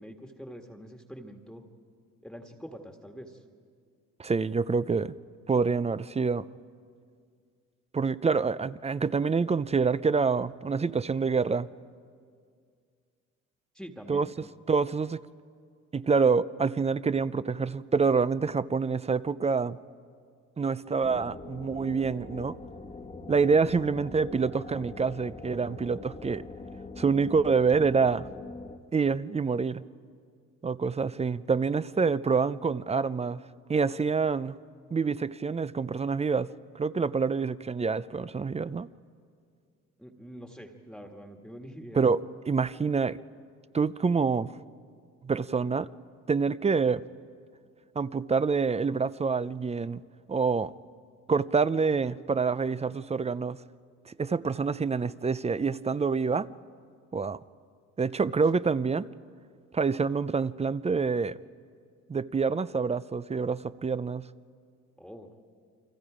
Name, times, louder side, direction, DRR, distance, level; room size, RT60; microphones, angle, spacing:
voice 1, 0.0-1.6 2.2-3.4 13.7-14.5 40.0-42.0 65.0-65.3, equal, ahead, 1.6 m, -45 dB
voice 2, 4.2-5.1 5.5-6.5 7.9-11.7 14.1-14.3 14.7-15.2 15.9-19.8 20.6-22.6 23.3-26.4 27.0-28.3 28.9-29.8 30.6-33.4 33.7-34.6 34.9-36.5 36.7-38.9 41.9-43.2 43.7-44.5 45.2-45.9 46.3-47.0 48.0-50.0 50.3-50.7 51.3-53.6 54.1-56.5 57.1-57.4 58.0-59.1 59.7-61.4 62.1-64.3, right 5 dB, 20° right, 0.5 m, -27 dB
sound 1, 21.0-28.8, left 3 dB, 20° left, 1.3 m, -43 dB
29.5 x 24.0 x 5.0 m
cardioid pair, 90°, 30 cm